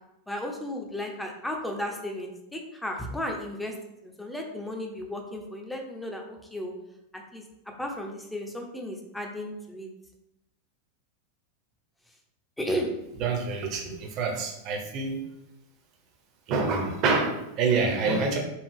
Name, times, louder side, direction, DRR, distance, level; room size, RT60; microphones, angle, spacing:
voice 1, 0.3-3.7 4.0-6.7 7.1-7.4 7.8-9.9 12.6-12.9, left 1 dB, 5° left, 2 dB, 0.8 m, -34 dB
voice 2, 13.2-15.2 16.5-18.4, right 4 dB, 40° right, 3 dB, 0.9 m, -26 dB
5.4 x 2.4 x 3.4 m, 0.89 s
figure-of-eight pair, 90°, 0 cm